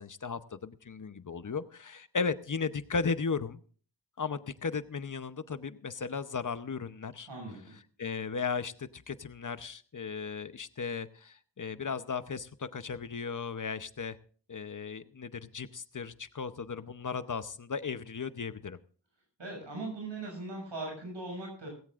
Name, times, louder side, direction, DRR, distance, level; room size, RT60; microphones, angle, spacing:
voice 1, 0.0-3.6 4.2-7.3 8.0-14.2 14.5-18.8, left 5 dB, 45° left, 12 dB, 0.8 m, -36 dB
voice 2, 7.3-7.7 19.4-21.7, right 2 dB, 90° right, 0 dB, 6.5 m, -39 dB
18.0 x 16.5 x 2.5 m, 0.42 s
wide cardioid pair, 80°, 43 cm